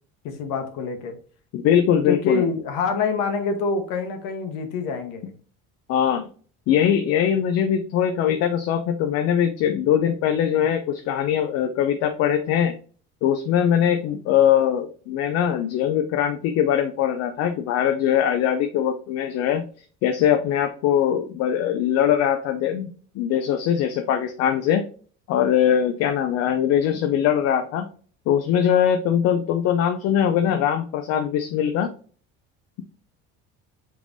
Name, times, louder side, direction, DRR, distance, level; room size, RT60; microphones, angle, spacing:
voice 1, 0.2-1.1 2.1-5.2, left 5 dB, 90° left, 6 dB, 1.1 m, -26 dB
voice 2, 1.5-2.4 5.9-6.3 6.7-12.7 13.2-19.6 20.0-24.9 25.3-27.9 28.3-31.9, left 9 dB, 50° left, 7 dB, 0.4 m, -21 dB
5.1 x 3.3 x 2.5 m, 0.43 s
cardioid pair, 175°, 32 cm